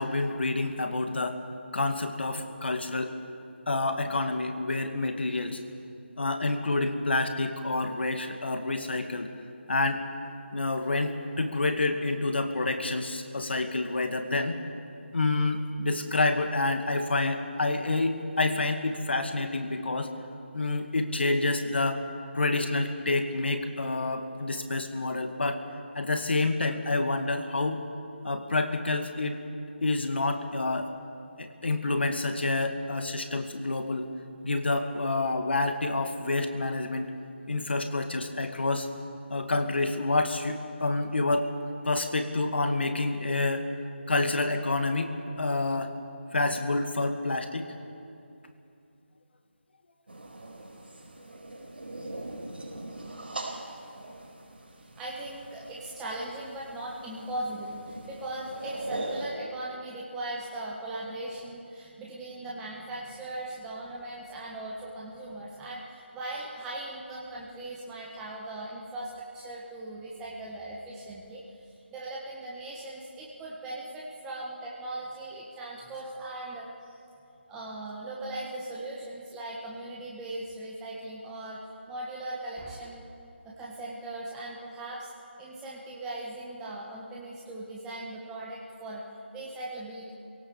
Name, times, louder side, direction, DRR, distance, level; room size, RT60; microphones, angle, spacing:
voice 1, 0.0-1.4 1.7-3.1 3.7-5.6 6.2-9.3 9.7-10.1 10.5-14.6 15.1-20.1 20.5-22.0 22.3-25.6 25.9-27.8 28.2-29.4 29.8-30.9 31.4-34.1 34.4-37.1 37.5-38.9 39.3-41.5 41.8-43.7 44.1-46.0 46.3-47.7, left 2 dB, 60° left, 6 dB, 2.2 m, -28 dB
sound 1, 50.1-59.3, right 2 dB, 55° right, 4.5 m, -41 dB
voice 2, 55.0-71.4 71.7-76.7 77.5-81.6 81.9-83.1 83.4-85.1 85.4-89.0 89.3-90.1, right 1 dB, 10° right, -5 dB, 1.5 m, -39 dB
26.0 x 18.0 x 7.1 m, 2.7 s
figure-of-eight pair, 160°, 6 cm